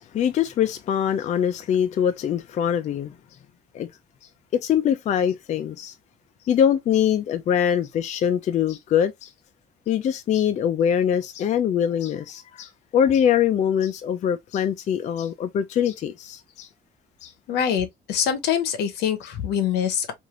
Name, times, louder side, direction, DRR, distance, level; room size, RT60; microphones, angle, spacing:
voice 1, 0.1-3.1 3.7-3.9 4.5-5.9 6.5-9.3 9.9-16.7 17.2-17.3, left 9 dB, 45° left, 0.4 m, -23 dB
voice 2, 17.5-20.1, left 8 dB, 80° left, 0.8 m, -24 dB
3.3 x 2.5 x 2.4 m
cardioid pair, 110°, 17 cm